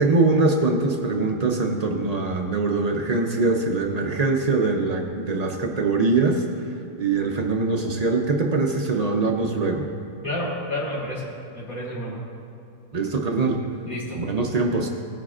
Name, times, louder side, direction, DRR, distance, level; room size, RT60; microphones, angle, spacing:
voice 1, 0.0-9.9 12.9-13.6 14.2-14.9, right 3 dB, 75° right, 2 dB, 0.3 m, -23 dB
voice 2, 10.2-11.3 11.5-12.2 13.9-14.4, left 1 dB, 60° left, -8 dB, 2.3 m, -30 dB
17.5 x 9.2 x 2.4 m, 2.5 s
omnidirectional pair, 1.7 m